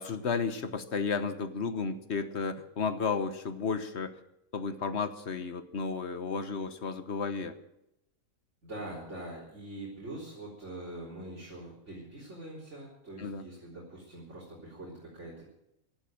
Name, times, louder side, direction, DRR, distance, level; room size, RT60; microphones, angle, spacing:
voice 1, 0.0-4.2 4.5-7.5 13.2-13.4, left 5 dB, 55° left, 10 dB, 1.4 m, -33 dB
voice 2, 8.6-15.4, right 1 dB, 55° right, -5 dB, 4.1 m, -43 dB
15.5 x 11.5 x 7.6 m, 0.84 s
omnidirectional pair, 1.4 m